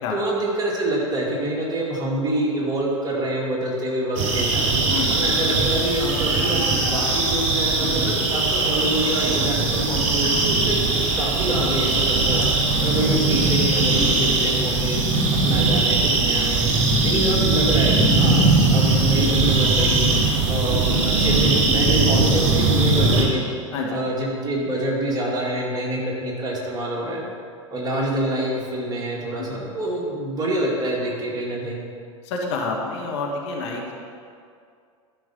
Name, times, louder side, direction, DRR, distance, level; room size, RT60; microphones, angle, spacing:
voice 1, 0.1-4.7 5.1-10.8 11.2-12.5 12.8-15.0 15.4-16.7 17.0-20.0 20.5-23.4 23.9-27.2 27.7-31.8, right 1 dB, 25° right, -3 dB, 2.5 m, -26 dB
sound 1, 4.2-23.2, right 3 dB, 40° right, 2.6 m, -20 dB
voice 2, 32.2-33.9, left 3 dB, 55° left, -1 dB, 1.6 m, -28 dB
13.0 x 5.7 x 5.4 m, 2.3 s
figure-of-eight pair, 85°, 17 cm